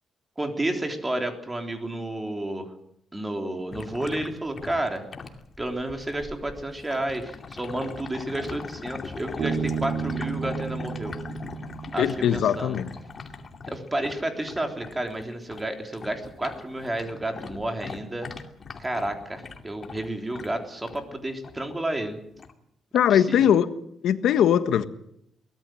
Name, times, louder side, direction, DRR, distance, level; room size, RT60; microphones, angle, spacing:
voice 1, 0.4-2.7 3.1-5.0 5.6-11.1 11.9-12.8 13.7-18.3 18.8-22.2 23.1-23.4, right 1 dB, 15° right, 4 dB, 3.5 m, -31 dB
sound 1, 3.7-15.7 15.9-21.1 21.4-21.8 22.4-22.5, left 4 dB, 40° left, 2.5 m, -40 dB
Bass guitar, 9.4-12.9, right 6 dB, 75° right, 2.7 m, -32 dB
voice 2, 12.0-12.9 22.9-23.7 24.0-24.8, left 9 dB, 80° left, 11 dB, 1.4 m, -20 dB
23.0 x 18.5 x 7.8 m, 0.74 s
cardioid pair, 115°, 0 cm